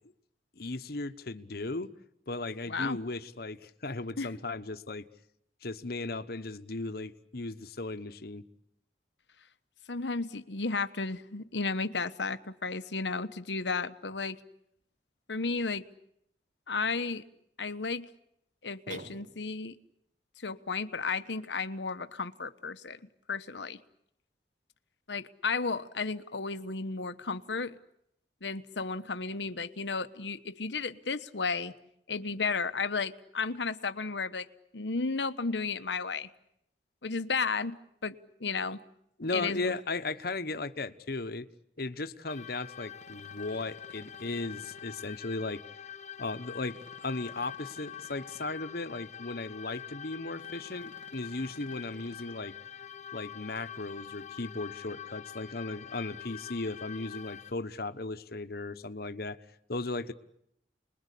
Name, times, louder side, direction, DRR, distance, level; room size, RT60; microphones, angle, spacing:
voice 1, 0.6-1.9 2.3-5.0 5.6-8.4 39.2-41.5 41.8-45.6 46.2-52.5 53.1-59.4 59.7-60.1, left 3 dB, 60° left, 11 dB, 1.2 m, -36 dB
voice 2, 2.7-3.0 4.2-4.3 9.9-14.4 15.3-15.9 16.7-17.2 17.6-18.1 18.6-19.8 20.4-23.0 23.3-23.8 25.1-27.8 28.4-31.7 32.1-34.5 34.7-36.3 37.0-38.8 39.3-39.7, left 4 dB, 85° left, 11 dB, 1.2 m, -33 dB
sound 1, 18.9-19.8, right 3 dB, 45° right, 1.0 m, -47 dB
sound 2, 42.3-57.5, left 9 dB, 40° left, 1.1 m, -45 dB
sound 3, 43.0-44.8 46.6-48.5 50.3-52.2, right 2 dB, 85° right, 2.8 m, -57 dB
29.5 x 21.5 x 8.5 m, 0.77 s
head